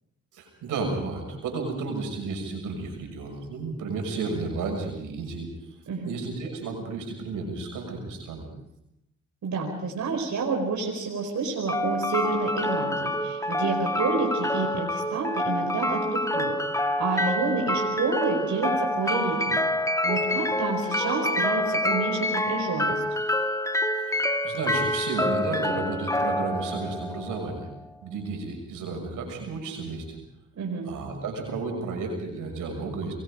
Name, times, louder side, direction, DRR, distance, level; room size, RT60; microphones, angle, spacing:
voice 1, 0.3-5.7 6.0-8.5 24.0-27.7 28.0-30.2 30.8-33.1, right 3 dB, 90° right, 2 dB, 6.5 m, -32 dB
voice 2, 9.4-16.5 17.0-19.6 20.0-23.0 30.6-30.9, right 4 dB, 65° right, 0 dB, 5.1 m, -29 dB
sound 1, 11.7-27.7, left 1 dB, 10° left, 2.3 m, -27 dB
27.5 x 21.5 x 5.1 m, 0.82 s
cardioid pair, 65°, 31 cm